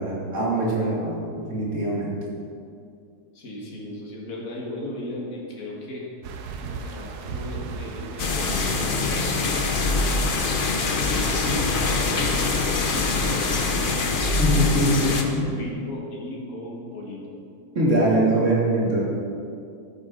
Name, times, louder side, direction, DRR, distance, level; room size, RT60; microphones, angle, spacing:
voice 1, 0.0-2.2 14.4-15.5 17.7-19.0, right 1 dB, 50° right, -5 dB, 2.7 m, -23 dB
voice 2, 3.3-6.1 6.6-10.0 11.0-13.9 14.9-15.0 15.4-17.2, left 1 dB, 60° left, -3 dB, 2.2 m, -36 dB
sound 1, 6.2-13.8, right 5 dB, 85° right, 1.3 m, -38 dB
sound 2, 8.2-15.2, left 3 dB, 40° left, 0.9 m, -24 dB
13.0 x 8.6 x 3.8 m, 2.4 s
omnidirectional pair, 1.6 m